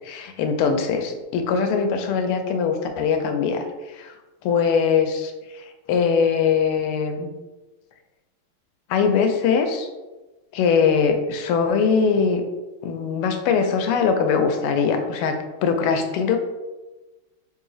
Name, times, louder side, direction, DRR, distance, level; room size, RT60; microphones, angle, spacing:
voice 1, 0.0-3.7 3.9-4.1 4.4-5.3 5.6-7.3 8.9-9.9 10.5-12.4 12.8-15.3 15.6-16.4, left 6 dB, 85° left, 6 dB, 1.5 m, -21 dB
4.0 x 2.8 x 3.7 m, 1.2 s
omnidirectional pair, 2.4 m